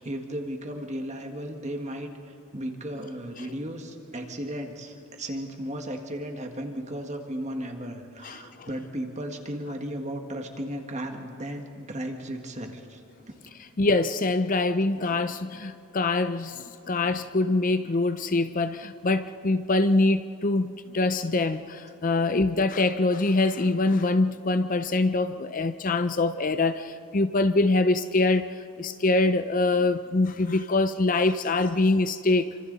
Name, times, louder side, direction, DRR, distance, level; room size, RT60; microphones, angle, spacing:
voice 1, 0.0-13.3, equal, 30° right, 4 dB, 1.8 m, -35 dB
voice 2, 8.2-8.7 13.8-32.5, left 2 dB, 35° left, 10 dB, 0.5 m, -24 dB
28.5 x 25.5 x 4.1 m, 2.6 s
head